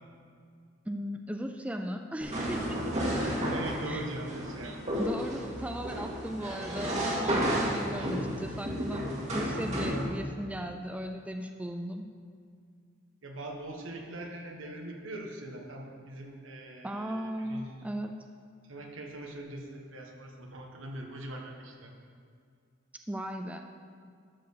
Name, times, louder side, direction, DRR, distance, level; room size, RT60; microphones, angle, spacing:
voice 1, 0.9-2.8 3.9-4.1 5.0-9.0 9.3-12.0 16.8-18.1 23.1-23.6, equal, 5° right, 5 dB, 0.4 m, -37 dB
sound 1, 2.2-10.0, equal, 35° right, 1.9 m, -32 dB
voice 2, 3.5-4.8 8.0-8.2 13.2-17.9 18.6-21.9, right 1 dB, 70° right, 1 dB, 1.4 m, -42 dB
12.5 x 4.7 x 6.7 m, 2.2 s
head